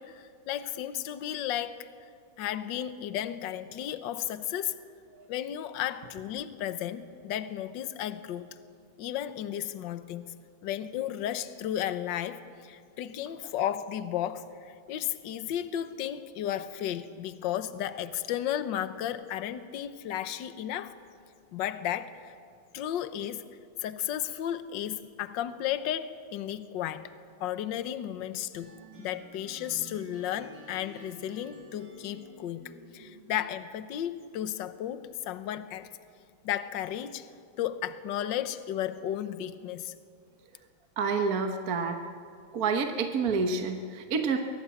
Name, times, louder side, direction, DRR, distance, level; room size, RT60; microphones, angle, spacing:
voice 1, 0.0-1.9 2.4-4.7 5.3-8.5 9.0-10.3 10.6-20.9 21.5-22.3 22.7-23.4 23.8-27.1 27.4-28.7 29.0-35.9 36.4-37.3 37.6-39.9, left 11 dB, 65° left, 12 dB, 1.5 m, -34 dB
sound 1, 28.5-33.6, right 2 dB, 65° right, 7.1 m, -51 dB
voice 2, 41.0-42.0 42.5-44.4, right 5 dB, 50° right, 5 dB, 1.4 m, -28 dB
24.0 x 18.0 x 8.4 m, 2.3 s
omnidirectional pair, 2.3 m